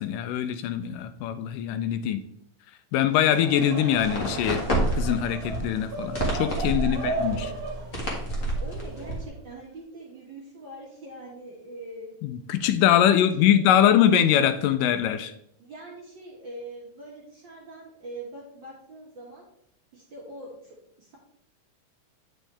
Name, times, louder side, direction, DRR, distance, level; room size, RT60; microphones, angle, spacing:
voice 1, 0.0-2.2 2.9-4.6 5.0-7.5 12.2-15.3, left 10 dB, 80° left, 9 dB, 2.1 m, -23 dB
Laughter / Crowd, 3.1-9.5, right 3 dB, 65° right, 2.4 m, -35 dB
sound 1, 3.9-9.3, right 1 dB, 35° left, 1.3 m, -30 dB
voice 2, 6.8-7.5 8.4-12.2 13.1-14.0 15.6-19.5 19.9-21.2, right 1 dB, 45° right, -4 dB, 1.7 m, -43 dB
9.0 x 5.5 x 3.3 m, 0.74 s
omnidirectional pair, 3.9 m